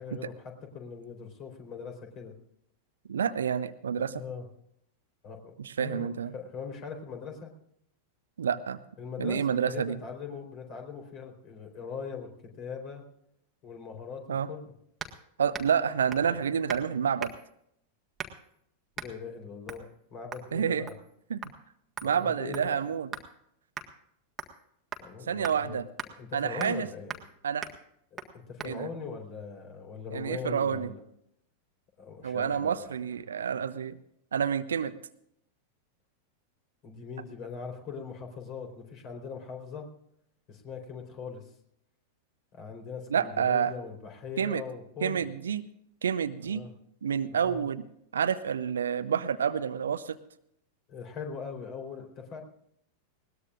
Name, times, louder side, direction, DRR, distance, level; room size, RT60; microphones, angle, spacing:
voice 1, 0.0-2.3 4.2-4.4 5.2-6.1 6.3-7.5 9.0-12.3 12.6-13.0 13.6-14.7 16.2-16.3 19.0-20.9 22.0-22.9 25.0-25.8 26.1-27.2 28.1-31.0 32.0-32.8 36.8-39.9 40.5-41.5 42.5-45.3 46.4-46.7 47.3-47.6 50.9-52.4, left 6 dB, 40° left, 3 dB, 4.1 m, -41 dB
voice 2, 3.1-4.2 5.6-6.3 8.4-8.8 9.2-10.0 14.3-14.5 15.4-17.3 20.5-20.9 21.3-21.4 22.0-23.1 25.3-25.8 26.3-26.9 27.4-27.7 28.6-28.9 30.1-30.9 32.2-34.0 34.3-34.9 43.1-43.7 44.4-44.6 45.0-45.6 46.0-46.6 47.0-47.8 48.1-50.2, right 7 dB, 65° right, 13 dB, 0.7 m, -28 dB
sound 1, 15.0-15.2 15.5-15.8 16.1-16.3 16.7-16.9 17.2-17.5 18.2-18.5 18.9-19.1 19.7-19.9 20.3-20.5 20.9-21.1 21.4-21.5 22.0-23.3 23.8-23.9 24.4-24.6 24.9-25.1 25.4-25.6 26.0-26.1 26.6-26.8 27.1-27.3 27.6-27.8 28.2-28.3 28.6-28.7, right 6 dB, 20° right, 1.6 m, -40 dB
20.5 x 19.0 x 2.6 m, 0.73 s
figure-of-eight pair, 90°, 0 cm